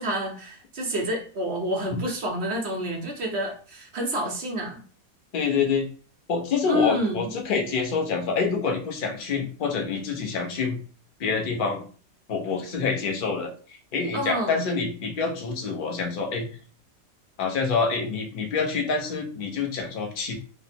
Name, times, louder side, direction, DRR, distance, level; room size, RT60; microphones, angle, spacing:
voice 1, 0.0-4.8 6.7-7.3 14.1-14.6, equal, 55° right, 1 dB, 0.7 m, -28 dB
voice 2, 5.3-5.9 6.3-10.8 11.2-11.8 12.3-13.5 13.9-16.5 17.4-20.3, left 5 dB, 55° left, 1 dB, 0.5 m, -26 dB
3.3 x 2.0 x 4.1 m, 0.39 s
omnidirectional pair, 1.9 m